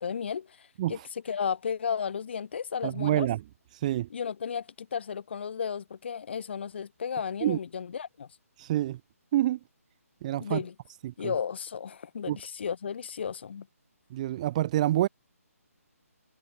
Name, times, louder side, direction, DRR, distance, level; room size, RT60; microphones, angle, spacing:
voice 1, 0.0-3.3 4.1-8.3 10.4-10.7 11.2-13.7, left 7 dB, 45° left, 7.6 m, -34 dB
voice 2, 2.8-3.4 3.8-4.1 7.4-7.6 8.6-9.0 9.3-9.6 10.2-10.6 11.0-11.3 12.3-12.4 14.1-15.1, right 14 dB, 25° right, 1.2 m, -27 dB
figure-of-eight pair, 145°, 8 cm